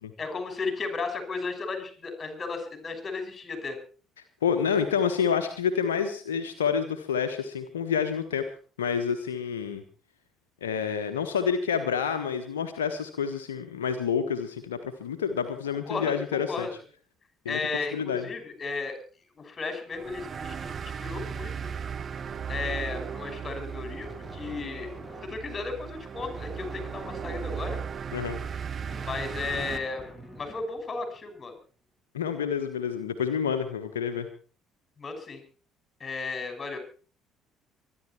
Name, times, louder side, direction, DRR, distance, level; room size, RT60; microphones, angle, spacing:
voice 1, 0.2-3.8 15.9-16.7 17.5-19.0 19.4-21.7 22.5-24.9 25.2-27.8 29.0-30.0 30.4-31.5 35.0-35.4 36.0-36.8, left 4 dB, 30° left, 7 dB, 6.2 m, -34 dB
voice 2, 4.4-8.4 8.8-9.8 10.6-16.7 17.4-17.6 17.9-18.3 28.1-28.4 32.1-34.3, left 7 dB, 80° left, 7 dB, 1.2 m, -28 dB
sound 1, 19.9-29.8, right 7 dB, 40° right, 0.9 m, -36 dB
sound 2, 24.0-25.6 26.2-31.3, right 1 dB, 5° right, 7.3 m, -46 dB
24.0 x 11.0 x 4.5 m, 0.39 s
figure-of-eight pair, 50°, 0 cm